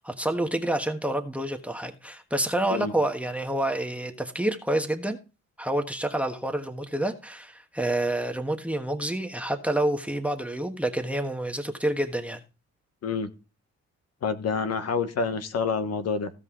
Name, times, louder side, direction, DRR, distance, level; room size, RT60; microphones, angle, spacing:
voice 1, 0.0-5.2 5.6-12.4, right 1 dB, 5° right, 1.4 m, -28 dB
voice 2, 14.2-16.3, left 5 dB, 55° left, 1.3 m, -27 dB
16.0 x 5.4 x 3.8 m
cardioid pair, 90°, 30 cm